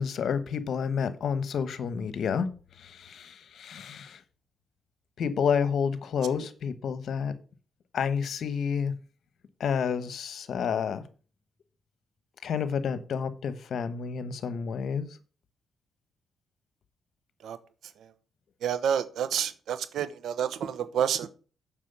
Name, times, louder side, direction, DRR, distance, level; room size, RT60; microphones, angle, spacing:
voice 1, 0.0-2.5 2.8-4.2 5.2-7.3 7.9-8.9 9.6-11.0 12.4-15.1, left 6 dB, 70° left, 1.1 m, -29 dB
voice 2, 18.6-21.3, right 8 dB, 80° right, 1.0 m, -29 dB
7.5 x 6.1 x 6.8 m
cardioid pair, 85°, 0 cm